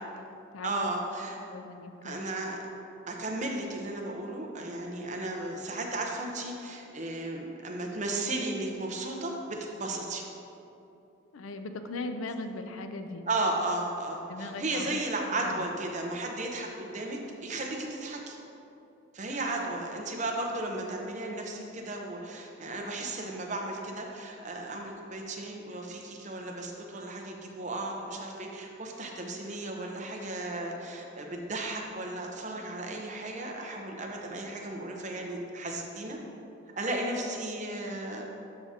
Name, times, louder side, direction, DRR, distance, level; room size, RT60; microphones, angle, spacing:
voice 1, 0.0-1.0 1.5-2.3 11.3-13.3 14.3-15.0 15.4-15.7, left 2 dB, 90° left, 7 dB, 0.5 m, -39 dB
voice 2, 0.6-1.4 2.0-2.6 3.1-10.2 13.3-18.4 19.1-36.2 36.7-38.3, right 2 dB, 35° right, 1 dB, 0.8 m, -35 dB
12.0 x 4.9 x 2.8 m, 2.8 s
head